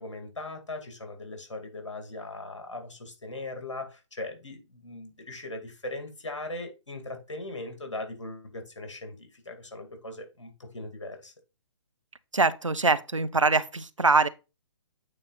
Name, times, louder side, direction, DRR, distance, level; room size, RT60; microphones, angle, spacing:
voice 1, 0.0-11.3, left 2 dB, 70° left, 2.4 m, -39 dB
voice 2, 12.3-14.3, right 3 dB, 85° right, 0.7 m, -23 dB
8.8 x 3.9 x 4.1 m
figure-of-eight pair, 135°, 16 cm